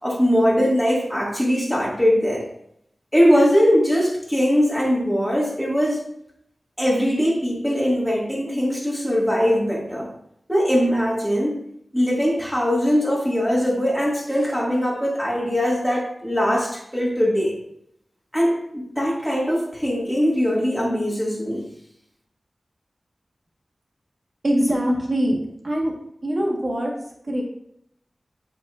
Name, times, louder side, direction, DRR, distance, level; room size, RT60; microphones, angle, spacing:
voice 1, 0.0-2.4 3.1-6.0 6.8-10.1 10.5-11.6 11.9-17.5 18.3-21.6, equal, ahead, -5 dB, 2.1 m, -21 dB
voice 2, 24.4-25.4 25.6-25.9 26.2-26.9 27.3-27.4, equal, 50° right, -1 dB, 1.5 m, -22 dB
7.2 x 5.1 x 2.6 m, 0.74 s
wide cardioid pair, 65°, 0 cm